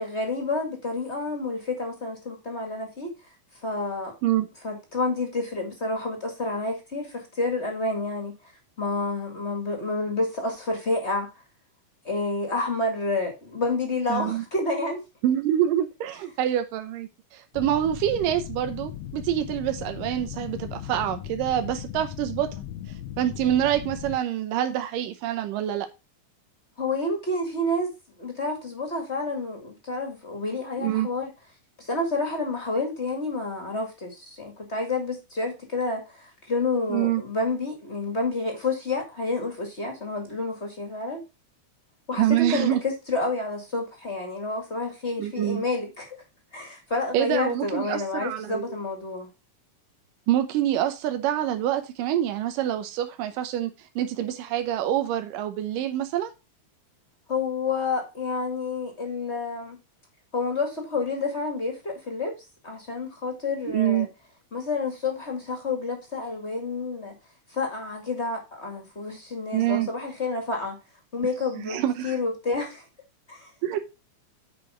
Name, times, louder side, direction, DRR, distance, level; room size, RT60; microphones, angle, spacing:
voice 1, 0.0-3.1 3.6-4.1 4.6-8.3 8.8-11.3 12.0-15.0 26.8-27.9 28.2-31.3 31.8-41.2 42.1-46.2 46.5-49.3 57.3-59.8 60.3-62.3 62.6-64.0 64.5-67.1 67.5-70.8 71.1-72.8 73.3-73.5, left 3 dB, 25° left, 1.7 m, -29 dB
voice 2, 14.1-14.4 15.2-22.5 23.2-25.9 30.8-31.1 36.9-37.2 42.1-42.8 45.2-45.6 47.1-48.7 50.3-56.3 63.7-64.1 69.5-69.9 71.6-72.2 73.6-73.8, right 12 dB, 90° right, 2.5 m, -26 dB
sound 1, 17.5-24.2, left 11 dB, 70° left, 1.7 m, -37 dB
8.5 x 5.3 x 5.0 m
omnidirectional pair, 3.7 m